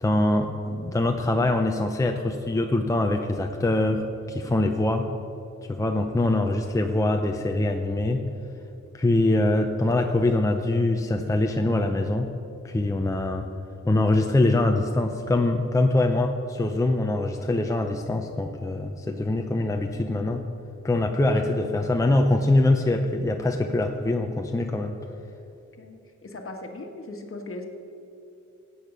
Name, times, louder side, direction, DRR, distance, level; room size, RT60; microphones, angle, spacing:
voice 1, 0.0-5.1 5.7-8.2 8.9-12.3 12.6-13.5 13.8-20.4 20.8-25.0, left 2 dB, 10° left, 3 dB, 0.6 m, -23 dB
voice 2, 25.8-27.6, left 2 dB, 45° left, 3 dB, 1.6 m, -38 dB
16.5 x 8.6 x 5.5 m, 2.8 s
wide cardioid pair, 130°, 30 cm